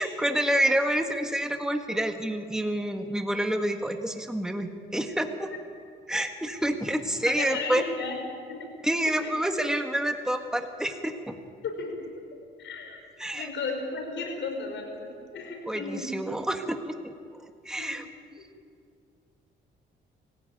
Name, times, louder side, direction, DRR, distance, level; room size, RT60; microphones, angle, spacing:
voice 1, 0.0-5.5 6.1-7.8 8.8-11.3 13.2-13.5 15.7-16.9 17.6-18.0, right 1 dB, 5° right, 5 dB, 1.6 m, -28 dB
voice 2, 7.3-8.2 8.5-8.7 9.2-9.3 11.6-12.0 12.6-13.0 13.3-16.1 17.8-17.9, left 4 dB, 75° left, 3 dB, 5.3 m, -34 dB
25.0 x 15.5 x 9.3 m, 2.3 s
cardioid pair, 95°, 19 cm